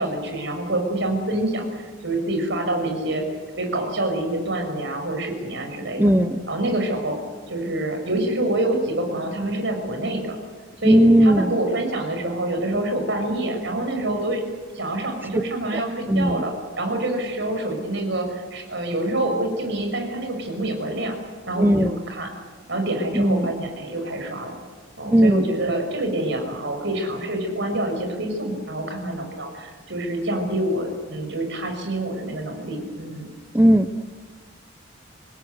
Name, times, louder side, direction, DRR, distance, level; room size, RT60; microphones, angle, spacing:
voice 1, 0.0-3.2 3.6-6.1 6.5-7.2 7.5-10.4 10.8-14.4 14.7-16.5 16.8-21.1 21.5-22.3 22.7-24.6 25.0-33.2, right 1 dB, 65° right, 4 dB, 6.0 m, -26 dB
voice 2, 6.0-6.4 10.8-11.5 16.1-16.4 21.6-22.0 23.2-23.5 25.1-25.4 33.5-33.9, equal, 10° right, 10 dB, 0.7 m, -16 dB
26.5 x 20.0 x 8.2 m, 1.5 s
head